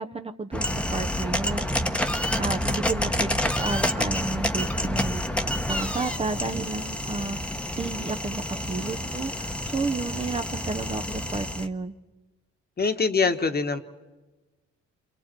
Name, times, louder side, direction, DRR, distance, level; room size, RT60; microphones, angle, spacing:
voice 1, 0.0-2.0 2.4-5.2 5.7-12.0, right 3 dB, 20° right, 6 dB, 0.8 m, -32 dB
sound 1, 0.5-11.7, left 1 dB, 5° left, 1.1 m, -28 dB
voice 2, 12.8-13.8, left 4 dB, 30° left, 8 dB, 1.4 m, -23 dB
28.5 x 27.0 x 4.6 m, 1.2 s
cardioid pair, 90°, 30 cm